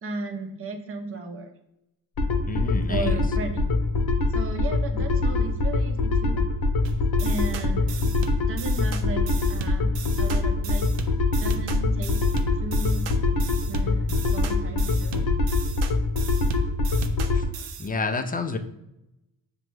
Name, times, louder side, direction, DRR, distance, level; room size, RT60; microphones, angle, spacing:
voice 1, 0.0-1.5 2.9-3.7 4.3-6.5 7.2-8.1 8.5-9.9 10.2-10.9 11.4-12.2 12.6-13.3 13.6-15.3, right 3 dB, 30° right, 5 dB, 0.7 m, -35 dB
sound 1, 2.2-17.4, left 3 dB, 50° left, 0.9 m, -24 dB
voice 2, 2.5-3.1 17.8-18.6, left 4 dB, 20° left, 8 dB, 0.4 m, -28 dB
sound 2, 6.8-17.9, right 4 dB, 65° right, 0.6 m, -37 dB
5.7 x 2.2 x 3.1 m, 0.87 s
supercardioid pair, 60°, 47 cm